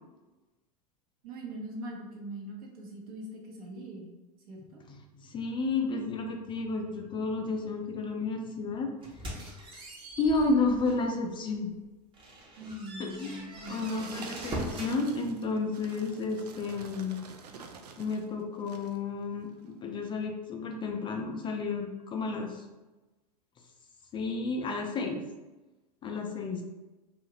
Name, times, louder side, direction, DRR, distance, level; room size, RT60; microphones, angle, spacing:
voice 1, 1.2-4.2 4.5-4.8 12.6-14.3, right 1 dB, 65° right, -2 dB, 0.9 m, -42 dB
voice 2, 4.6-9.2 10.2-11.7 13.0-17.2 18.0-22.7 24.1-25.2 26.0-26.6, left 3 dB, 25° left, 2 dB, 0.4 m, -32 dB
sound 1, 9.0-11.1 11.6-11.7 12.1-15.0, right 1 dB, 25° right, 0.8 m, -41 dB
sound 2, 13.1-18.3 18.6-19.0 19.6-19.7, right 5 dB, 80° right, 0.4 m, -47 dB
2.7 x 2.4 x 3.0 m, 1.1 s
hypercardioid pair, 90°, 20 cm